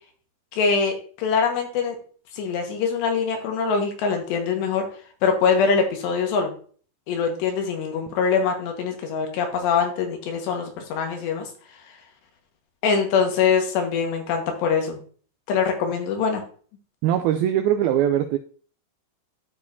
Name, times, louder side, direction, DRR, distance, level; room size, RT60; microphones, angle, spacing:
voice 1, 0.5-2.0 2.3-4.9 5.2-6.5 7.1-11.5 12.8-15.0 15.5-16.4, left 5 dB, 80° left, 3 dB, 3.7 m, -23 dB
voice 2, 17.0-18.4, right 11 dB, 85° right, 8 dB, 2.1 m, -21 dB
14.0 x 4.8 x 2.7 m, 0.43 s
omnidirectional pair, 4.9 m